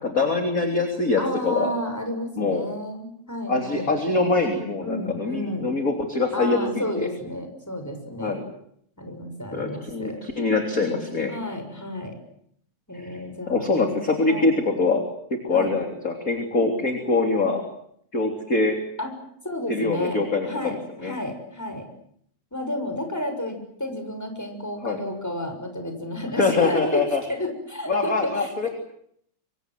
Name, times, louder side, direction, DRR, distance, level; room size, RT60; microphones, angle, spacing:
voice 1, 0.0-1.7 2.4-2.7 3.5-7.1 8.2-8.4 9.5-11.3 12.9-13.2 13.5-15.0 15.3-17.6 18.1-18.8 19.7-21.1 24.8-25.0 26.4-27.2 27.9-28.7, left 3 dB, 25° left, 4 dB, 3.7 m, -24 dB
voice 2, 1.2-3.9 4.8-5.7 6.3-8.4 9.0-10.2 11.3-12.2 12.9-13.9 14.3-14.5 15.5-15.7 19.0-19.1 19.4-21.9 22.5-27.0 27.3-28.7, left 1 dB, 5° left, 5 dB, 6.5 m, -32 dB
26.0 x 26.0 x 7.8 m, 0.69 s
omnidirectional pair, 3.4 m